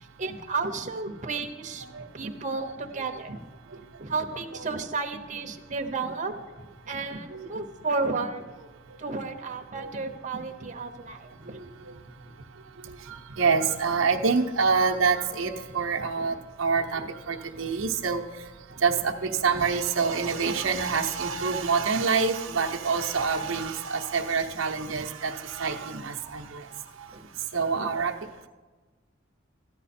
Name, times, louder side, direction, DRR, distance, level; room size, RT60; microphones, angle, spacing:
voice 1, 0.2-3.5 4.0-6.4 6.9-8.4 9.0-11.6 16.2-16.3 18.7-18.8 27.1-27.3 27.7-27.9, right 4 dB, 40° right, 3 dB, 0.8 m, -32 dB
voice 2, 4.3-4.7 7.3-7.5 9.7-9.9 11.5-11.6 13.0-18.2 18.8-26.6 27.0-27.1 27.5-28.1, right 5 dB, 80° right, 2 dB, 0.8 m, -26 dB
13.5 x 10.0 x 4.3 m, 1.3 s
head